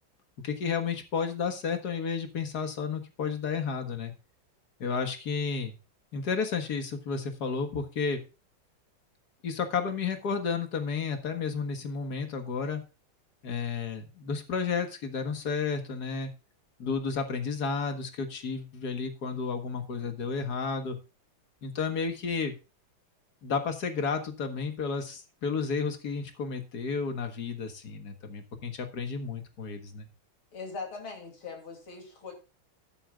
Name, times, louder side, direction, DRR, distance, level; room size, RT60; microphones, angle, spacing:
voice 1, 0.4-4.1 4.8-5.8 6.1-8.2 9.4-12.8 13.4-16.3 16.8-21.0 21.6-22.6 23.4-30.1, left 5 dB, 50° left, 7 dB, 2.0 m, -32 dB
voice 2, 30.5-32.3, left 4 dB, 80° left, 2 dB, 3.7 m, -40 dB
12.5 x 11.0 x 2.4 m, 0.31 s
omnidirectional pair, 2.3 m